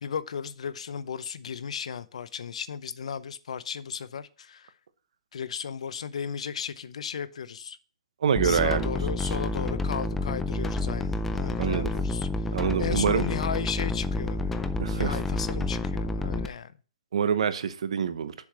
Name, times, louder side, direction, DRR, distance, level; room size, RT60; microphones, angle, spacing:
voice 1, 0.0-4.7 5.3-7.8 8.4-12.5 12.8-16.7, left 7 dB, 70° left, 0.6 m, -35 dB
voice 2, 8.2-8.9 9.2-9.3 11.6-11.9 12.5-13.2 14.8-15.2 17.1-18.3, right 7 dB, 65° right, 0.9 m, -26 dB
sound 1, 8.4-16.5, left 2 dB, 5° left, 0.4 m, -29 dB
7.0 x 4.8 x 6.8 m
hypercardioid pair, 170°, 4 cm